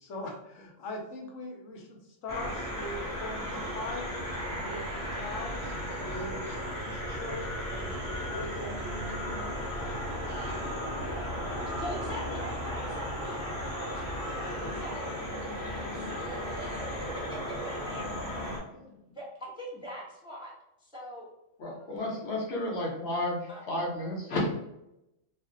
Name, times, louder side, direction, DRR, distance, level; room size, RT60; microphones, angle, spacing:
voice 1, 0.0-6.5 6.8-9.7, left 1 dB, 85° left, 0 dB, 1.1 m, -41 dB
sound 1, 2.3-18.6, equal, 20° left, 0.8 m, -35 dB
voice 2, 11.8-15.1 15.7-20.5 20.8-21.3 21.7-22.1 23.5-23.6, equal, 5° right, -5 dB, 0.5 m, -44 dB
voice 3, 21.6-24.5, left 1 dB, 60° left, -2 dB, 1.0 m, -32 dB
2.5 x 2.1 x 3.7 m, 0.87 s
omnidirectional pair, 1.3 m